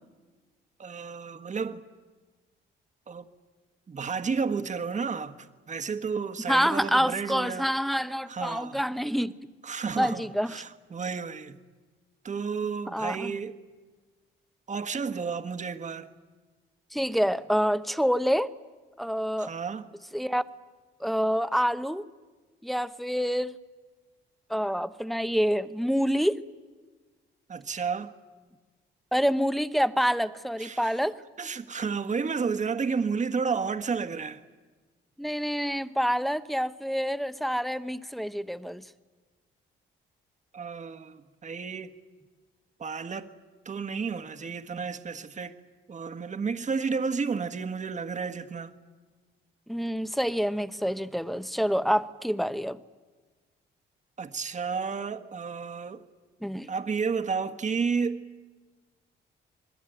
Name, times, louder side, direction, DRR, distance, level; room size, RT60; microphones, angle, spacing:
voice 1, 0.8-1.8 3.1-3.3 3.9-7.7 8.3-8.8 9.6-11.6 12.2-13.6 14.7-16.1 19.4-19.9 27.5-28.1 30.6-30.9 31.4-34.4 40.5-41.9 42.8-43.3 43.6-45.6 45.9-48.7 54.2-56.0 56.7-58.3, right 5 dB, 35° right, 1.6 m, -32 dB
voice 2, 6.5-9.3 10.0-10.5 12.9-13.3 16.9-18.5 19.0-19.5 20.1-20.4 21.0-22.0 22.6-23.6 24.5-26.4 29.1-31.2 35.2-38.8 49.7-52.8 56.4-56.7, equal, ahead, 1.0 m, -27 dB
26.5 x 20.5 x 9.2 m
cardioid pair, 90°, 20 cm